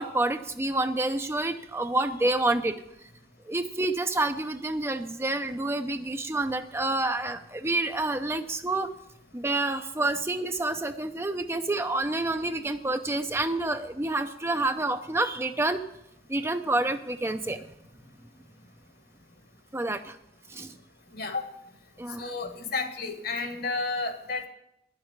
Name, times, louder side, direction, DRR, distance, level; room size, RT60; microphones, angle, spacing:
voice 1, 0.0-2.8 3.5-8.9 9.3-15.8 16.3-17.7 19.7-20.2 20.5-20.7 22.0-22.3, right 2 dB, 15° right, 8 dB, 0.5 m, -28 dB
voice 2, 21.1-21.5 22.2-24.5, left 3 dB, 60° left, 6 dB, 1.6 m, -31 dB
10.5 x 7.4 x 9.6 m, 0.82 s
head